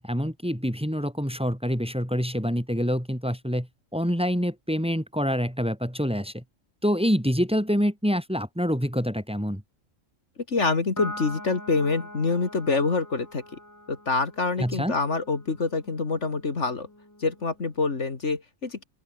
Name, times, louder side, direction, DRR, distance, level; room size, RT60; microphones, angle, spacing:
voice 1, 0.0-3.7 3.9-6.4 6.8-9.6 14.6-14.9, equal, 5° right, 3.4 m, -26 dB
voice 2, 10.5-13.4 13.9-16.9 17.2-18.8, left 4 dB, 60° left, 2.5 m, -26 dB
Piano, 11.0-17.7, left 1 dB, 15° left, 3.5 m, -43 dB
open air
omnidirectional pair, 1.3 m